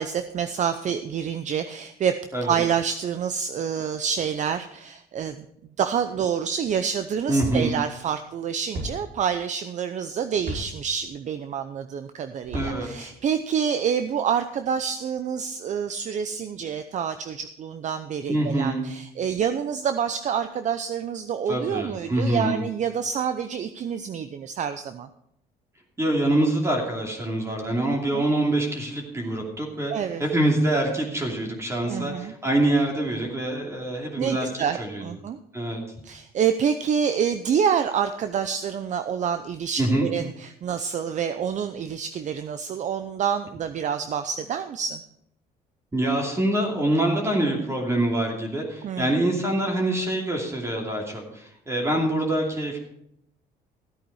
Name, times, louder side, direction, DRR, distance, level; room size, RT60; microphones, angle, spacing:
voice 1, 0.0-5.4 5.8-25.1 27.9-28.3 29.9-30.2 31.8-32.3 34.2-35.4 36.0-45.0 48.8-49.1, right 7 dB, 45° right, 9 dB, 0.7 m, -27 dB
voice 2, 7.3-7.7 12.5-13.1 18.3-18.8 21.5-22.6 26.0-29.9 30.2-34.5 34.8-35.0 35.5-35.8 39.8-40.1 45.9-52.8, right 1 dB, 15° right, 0 dB, 2.7 m, -25 dB
sound 1, 7.4-7.6 8.7-8.9 10.4-10.6 12.4-12.7, equal, 65° right, 5.5 m, -31 dB
13.5 x 8.7 x 4.8 m, 0.75 s
cardioid pair, 110°, 17 cm